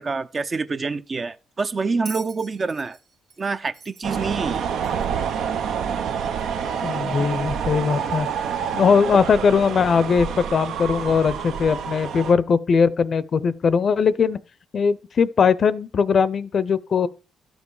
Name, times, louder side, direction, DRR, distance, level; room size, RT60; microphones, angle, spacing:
voice 1, 0.0-3.0 3.4-4.6, right 4 dB, 35° right, 0.6 m, -26 dB
Bell, 2.0-5.2 6.4-6.5, right 5 dB, 60° right, 1.6 m, -43 dB
sound 1, 4.0-12.3, right 7 dB, 75° right, 0.7 m, -27 dB
voice 2, 6.8-8.3 8.7-14.4 14.7-17.1, left 6 dB, 50° left, 0.5 m, -20 dB
12.5 x 5.3 x 4.8 m
cardioid pair, 90°, 0 cm